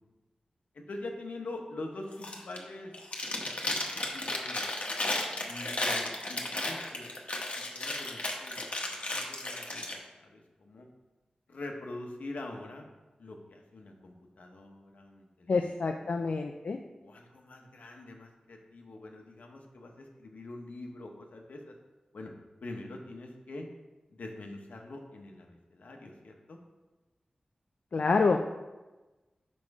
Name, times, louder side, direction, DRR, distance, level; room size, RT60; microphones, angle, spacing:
voice 1, 0.7-2.9 4.1-4.7 5.4-7.2 7.7-10.9 11.5-12.8 13.2-16.2 17.0-21.7 22.1-22.3 22.6-23.7 24.1-26.6, left 2 dB, 80° left, 2 dB, 1.0 m, -44 dB
Chewing mastication, 2.1-2.6 2.9-10.0, left 2 dB, 50° left, 1.0 m, -34 dB
voice 2, 15.5-16.8 27.9-28.4, left 4 dB, 65° left, 4 dB, 0.4 m, -27 dB
5.4 x 5.2 x 4.7 m, 1.1 s
wide cardioid pair, 65°, 3 cm